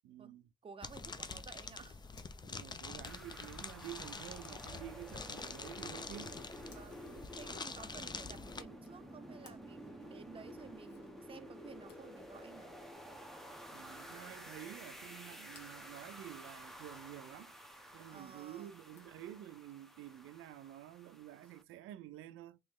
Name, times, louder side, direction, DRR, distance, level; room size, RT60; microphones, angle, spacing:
voice 1, 0.0-0.5 2.5-6.4 13.7-17.5 17.9-22.6, right 13 dB, 85° right, 0.4 m, -50 dB
voice 2, 0.6-2.1 2.6-2.8 6.7-12.8 18.1-18.8, right 6 dB, 25° right, 0.5 m, -54 dB
sound 1, 0.8-8.6, left 4 dB, 20° left, 0.5 m, -46 dB
Zipper (clothing), 2.1-19.4, left 4 dB, 60° left, 1.5 m, -70 dB
sound 2, 3.0-21.6, equal, ahead, 0.8 m, -52 dB
3.1 x 3.0 x 3.6 m
cardioid pair, 90°, 20 cm